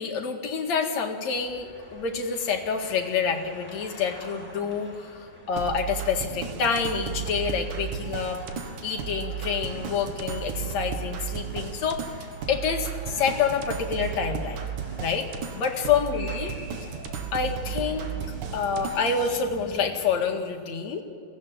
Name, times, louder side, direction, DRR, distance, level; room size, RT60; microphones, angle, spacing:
voice 1, 0.0-8.4 8.8-14.6 15.0-15.3 15.5-16.5 17.3-18.1 18.5-21.0, left 6 dB, 65° left, 3 dB, 3.2 m, -27 dB
sound 1, 1.3-20.3, left 1 dB, 15° left, 4.0 m, -46 dB
sound 2, 5.6-19.3, right 7 dB, 80° right, 3.1 m, -34 dB
23.0 x 17.5 x 9.0 m, 2.4 s
omnidirectional pair, 3.5 m